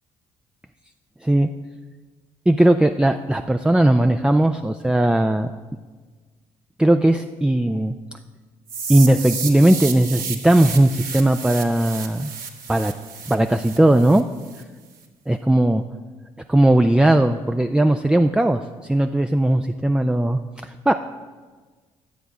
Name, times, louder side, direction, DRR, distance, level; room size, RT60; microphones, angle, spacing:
voice 1, 2.5-5.5 6.8-7.9 8.9-12.3 12.7-12.9 13.3-14.3 15.3-15.8 16.5-20.9, right 1 dB, 5° right, 6 dB, 0.5 m, -18 dB
sound 1, 8.7-14.6, right 6 dB, 60° right, 1.7 m, -32 dB
11.5 x 8.0 x 4.9 m, 1.4 s
hypercardioid pair, 50°, 16 cm